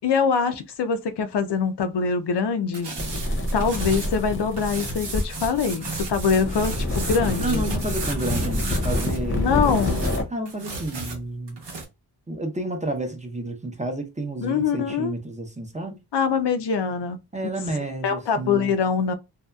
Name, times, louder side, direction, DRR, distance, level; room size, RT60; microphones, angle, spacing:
voice 1, 0.0-2.9 3.5-7.7 9.3-10.0 14.4-15.1 16.1-17.2 18.0-19.1, left 6 dB, 75° left, 0.5 m, -24 dB
sound 1, 2.7-4.2 4.6-9.2 9.5-11.8, right 3 dB, 90° right, 1.0 m, -34 dB
sound 2, 3.0-10.2, left 1 dB, 30° left, 0.7 m, -27 dB
voice 2, 7.4-9.6 10.3-11.6 12.3-16.0 17.3-18.7, right 2 dB, 15° right, 0.6 m, -30 dB
2.7 x 2.3 x 2.2 m
wide cardioid pair, 75°, 41 cm